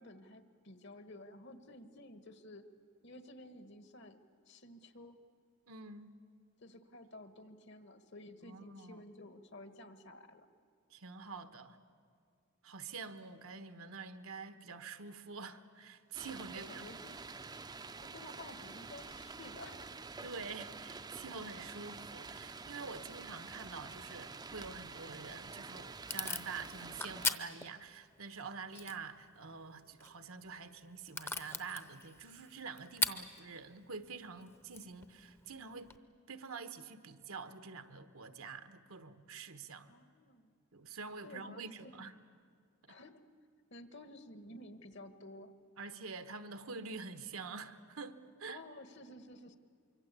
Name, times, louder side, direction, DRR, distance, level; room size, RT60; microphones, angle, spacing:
voice 1, 0.0-2.6 3.0-4.2 4.5-5.2 6.6-10.5 16.5-17.2 18.0-19.9 39.9-40.5 41.2-42.1 42.9-43.2 43.7-45.5 48.5-49.6, left 1 dB, 55° left, 10 dB, 1.4 m, -52 dB
voice 2, 5.7-6.1 8.4-9.0 10.9-11.8 12.6-16.9 20.2-35.9 36.3-39.9 40.7-42.1 42.9-43.0 45.8-48.6, right 4 dB, 80° right, 10 dB, 1.3 m, -47 dB
sound 1, 16.1-27.3, right 4 dB, 20° right, 0.5 m, -48 dB
Packing tape duct tape / Tearing, 25.2-36.0, left 2 dB, 10° left, 0.7 m, -43 dB
25.0 x 24.0 x 8.3 m, 2.2 s
head